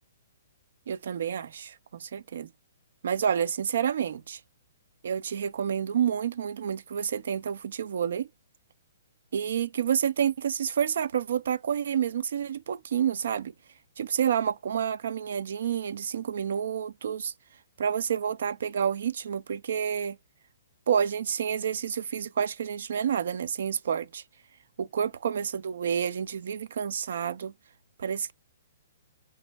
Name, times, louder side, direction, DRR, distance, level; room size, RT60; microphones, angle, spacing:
voice 1, 0.9-2.5 3.0-4.4 5.0-8.3 9.3-13.5 14.0-17.3 17.8-20.2 20.9-24.2 24.8-27.5 28.0-28.3, right 8 dB, 70° right, 0.4 m, -29 dB
5.2 x 2.4 x 4.0 m
hypercardioid pair, 150°, 0 cm